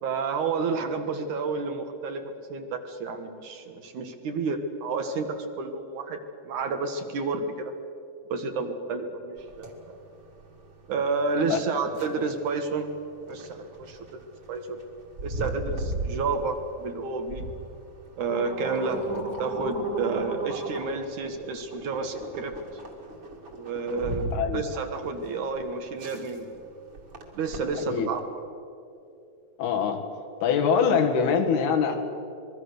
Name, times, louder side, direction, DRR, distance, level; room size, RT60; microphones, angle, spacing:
voice 1, 0.0-7.7 8.3-9.7 10.9-12.9 13.3-14.8 15.2-17.5 18.1-22.5 23.5-24.3 24.5-26.6 27.3-28.2, right 4 dB, 60° right, 6 dB, 2.5 m, -30 dB
sound 1, 9.4-28.2, right 2 dB, 35° right, 2.6 m, -37 dB
voice 2, 24.3-24.6 27.9-28.1 29.6-30.1 30.4-32.0, left 6 dB, 90° left, 4 dB, 3.8 m, -23 dB
25.5 x 21.5 x 6.6 m, 2.7 s
omnidirectional pair, 4.4 m